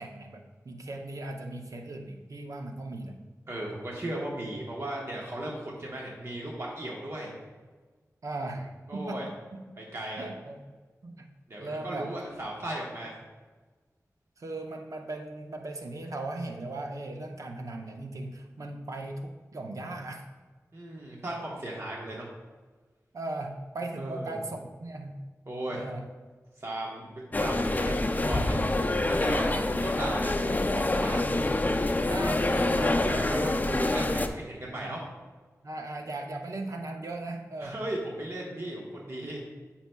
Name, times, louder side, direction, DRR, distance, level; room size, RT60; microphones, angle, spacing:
voice 1, 0.0-3.1 8.2-9.6 10.2-10.6 11.0-11.3 11.6-12.1 14.4-20.2 23.1-25.1 25.7-26.0 29.2-29.6 31.3-31.4 32.0-33.2 34.8-34.9 35.6-37.8, right 2 dB, 70° right, 3 dB, 0.6 m, -38 dB
voice 2, 3.5-7.3 8.9-9.3 9.8-10.2 11.5-13.2 20.7-22.3 24.0-24.4 25.5-25.9 26.6-28.6 29.0-29.5 29.8-31.2 32.8-35.0 37.6-39.4, right 1 dB, 50° right, -3 dB, 1.1 m, -36 dB
sound 1, 27.3-34.3, left 2 dB, 30° left, 0.4 m, -26 dB
9.0 x 5.8 x 2.2 m, 1.4 s
wide cardioid pair, 75°, 6 cm